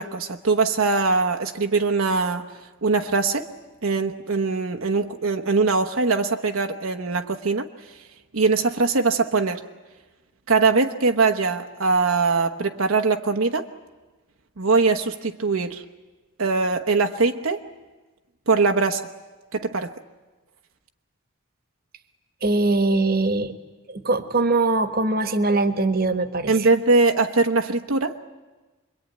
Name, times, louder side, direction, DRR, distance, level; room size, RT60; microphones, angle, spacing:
voice 1, 0.0-2.5 2.8-3.5 3.8-7.7 8.3-9.6 10.5-13.7 14.6-15.8 16.4-17.6 18.5-19.1 19.5-19.9 26.5-28.1, right 4 dB, 70° right, 6 dB, 1.1 m, -21 dB
voice 2, 22.4-23.5 23.9-26.7, right 2 dB, 45° right, 11 dB, 1.4 m, -22 dB
26.5 x 22.5 x 9.3 m, 1.2 s
head